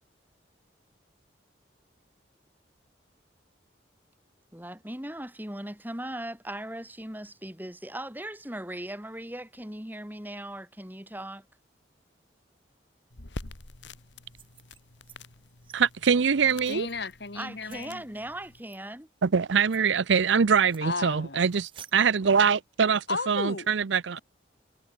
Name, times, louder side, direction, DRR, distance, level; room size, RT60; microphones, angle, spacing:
voice 1, 4.5-11.4 17.3-19.1, right 1 dB, 10° right, 4.3 m, -38 dB
sound 1, 13.1-18.6, left 2 dB, 80° left, 2.2 m, -46 dB
sound 2, 14.3-15.2 15.5-15.8 16.3-16.9 17.6-17.8 18.6-18.8 19.2-19.3 19.6-19.8 20.5-20.9 21.5-21.9, right 8 dB, 30° right, 4.4 m, -52 dB
voice 2, 15.7-16.9 19.2-24.2, right 6 dB, 80° right, 0.6 m, -23 dB
voice 3, 16.7-18.0 20.8-21.4 23.1-23.7, left 3 dB, 60° left, 2.1 m, -33 dB
head